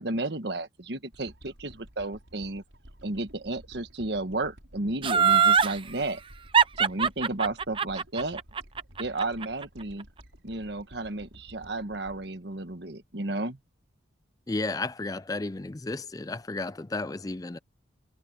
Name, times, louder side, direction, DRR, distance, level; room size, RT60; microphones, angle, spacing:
voice 1, 0.0-2.6 3.0-6.2 6.8-8.4 9.0-10.1 10.4-13.6, right 2 dB, 60° right, 1.4 m, -33 dB
sound 1, 1.1-13.5 13.9-14.0, equal, 90° right, 6.4 m, -53 dB
Laughter, 5.0-5.7 6.5-9.6 10.0-10.1, right 7 dB, 25° right, 0.6 m, -21 dB
voice 2, 14.5-17.6, left 2 dB, 20° left, 0.4 m, -33 dB
head